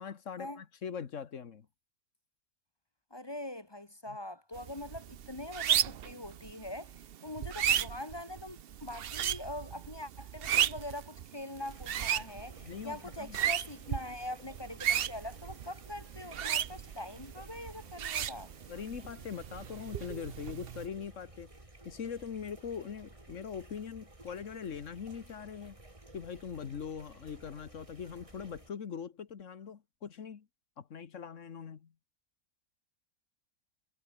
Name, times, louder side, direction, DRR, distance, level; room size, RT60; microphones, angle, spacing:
voice 1, 0.0-1.7 4.1-4.2 12.6-13.4 18.7-21.5 21.8-25.8 26.1-30.5 30.8-31.9, left 7 dB, 50° left, 1.5 m, -42 dB
voice 2, 3.1-18.5, left 1 dB, 20° left, 0.8 m, -43 dB
sound 1, 4.6-20.9, right 10 dB, 80° right, 0.5 m, -35 dB
sound 2, 11.6-28.7, right 2 dB, 20° right, 2.8 m, -55 dB
omnidirectional pair, 1.8 m